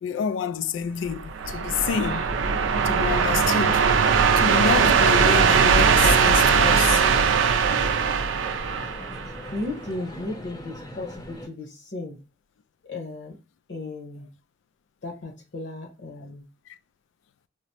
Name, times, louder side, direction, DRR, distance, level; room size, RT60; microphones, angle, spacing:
voice 1, 0.0-3.9 4.3-7.1 16.7-16.8, left 7 dB, 90° left, 0.3 m, -28 dB
sound 1, 1.1-9.6, right 6 dB, 90° right, 0.4 m, -20 dB
sound 2, 2.0-11.5, equal, 20° left, 0.6 m, -39 dB
voice 2, 9.2-12.2 12.9-13.4 13.7-14.3 15.0-16.5, left 2 dB, 70° left, 1.0 m, -35 dB
4.8 x 2.1 x 2.8 m
head